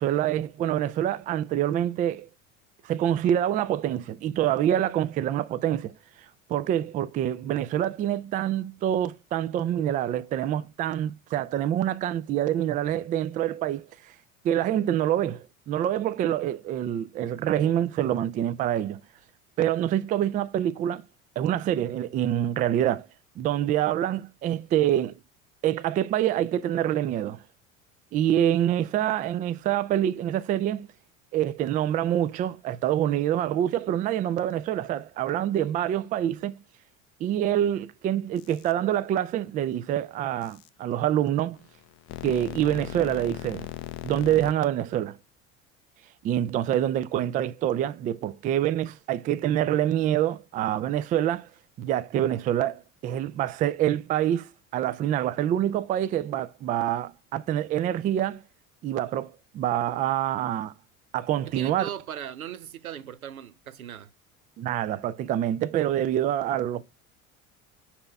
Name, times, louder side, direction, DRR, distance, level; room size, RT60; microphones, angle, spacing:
voice 1, 0.0-2.3 2.8-5.9 6.5-13.9 14.4-19.0 19.6-21.0 21.4-23.1 23.4-25.1 25.6-27.4 28.1-30.9 31.3-36.6 37.2-41.6 42.2-43.7 44.0-45.2 46.2-51.5 51.8-58.4 58.8-60.7 61.1-61.9 64.6-66.8, right 11 dB, 20° right, 0.3 m, -26 dB
sound 1, 38.4-38.7 40.4-40.7 41.5-44.5, left 15 dB, 35° left, 0.5 m, -38 dB
voice 2, 61.4-64.1, right 9 dB, 85° right, 0.6 m, -38 dB
5.6 x 4.2 x 5.3 m
figure-of-eight pair, 65°, 41 cm